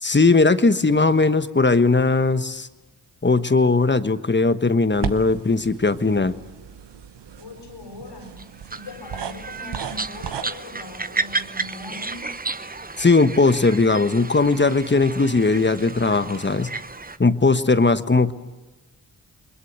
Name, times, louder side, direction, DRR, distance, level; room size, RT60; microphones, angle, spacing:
voice 1, 0.0-2.7 3.2-6.3 13.0-16.7 17.2-18.3, left 3 dB, 25° left, 12 dB, 1.2 m, -18 dB
sound 1, 4.9-10.4, right 8 dB, 90° right, 1.1 m, -35 dB
voice 2, 7.4-8.4 8.7-12.4, left 2 dB, 85° left, 4 dB, 7.2 m, -40 dB
sound 2, 8.4-17.2, right 3 dB, 20° right, 1.0 m, -32 dB
29.5 x 21.0 x 8.1 m, 1.1 s
cardioid pair, 50°, 40 cm